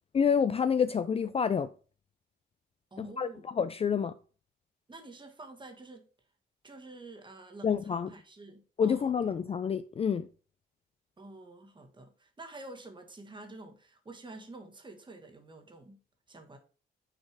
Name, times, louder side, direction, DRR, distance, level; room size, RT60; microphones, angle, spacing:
voice 1, 0.1-1.7 3.0-4.1 7.6-8.1 8.8-10.3, left 7 dB, 30° left, 0.4 m, -28 dB
voice 2, 2.9-3.5 4.9-6.1 6.6-9.1 11.2-16.0 16.3-16.6, right 2 dB, 25° right, 1.5 m, -49 dB
6.2 x 4.4 x 4.6 m
cardioid pair, 90°, 20 cm